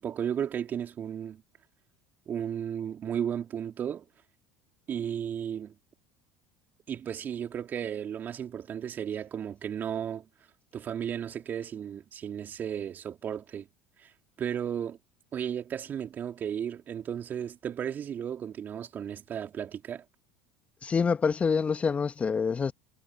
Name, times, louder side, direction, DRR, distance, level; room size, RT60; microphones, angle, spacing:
voice 1, 0.0-1.4 2.3-4.1 4.9-5.8 6.9-10.3 10.7-13.7 14.0-14.1 14.4-15.0 15.3-20.0, right 9 dB, 40° right, 4.3 m, -34 dB
voice 2, 20.8-22.7, left 5 dB, 25° left, 1.8 m, -26 dB
hypercardioid pair, 70°, 5 cm